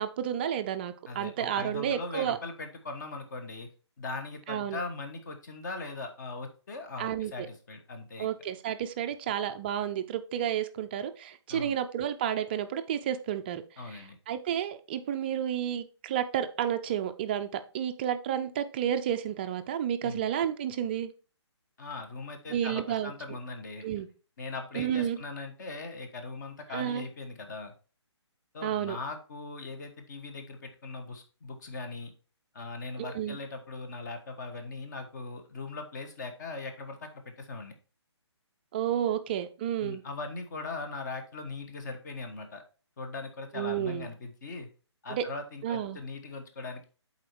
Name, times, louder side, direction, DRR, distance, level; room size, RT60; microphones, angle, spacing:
voice 1, 0.0-2.4 4.5-4.8 7.0-7.5 8.2-13.6 13.9-21.1 22.5-23.1 23.8-24.1 24.7-25.2 26.7-27.0 28.6-29.0 33.0-33.4 38.7-40.0 43.5-44.1 45.1-45.2 45.6-46.0, right 10 dB, 20° right, 0.5 m, -31 dB
voice 2, 1.1-3.7 4.0-8.3 11.5-11.8 13.8-14.2 20.0-20.3 21.8-23.9 24.4-27.7 28.5-32.1 32.5-37.7 39.8-42.6 43.0-44.7 45.0-46.8, left 3 dB, 40° left, 1.4 m, -40 dB
7.6 x 4.3 x 4.5 m
figure-of-eight pair, 140°, 15 cm